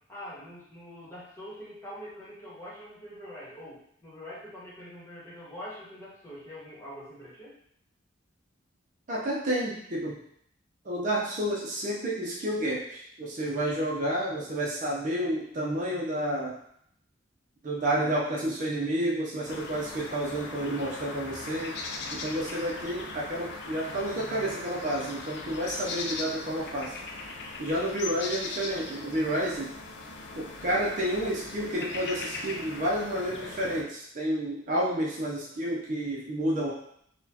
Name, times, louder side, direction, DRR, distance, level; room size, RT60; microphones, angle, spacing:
voice 1, 0.1-7.5, equal, 15° left, -8 dB, 1.2 m, -44 dB
voice 2, 9.1-10.2 10.8-16.6 17.6-21.8 22.1-27.0 27.6-29.7 30.3-36.7, right 1 dB, 45° right, -4 dB, 0.6 m, -30 dB
sound 1, 19.5-33.8, left 3 dB, 60° left, 0.4 m, -39 dB
4.1 x 2.2 x 2.8 m, 0.69 s
head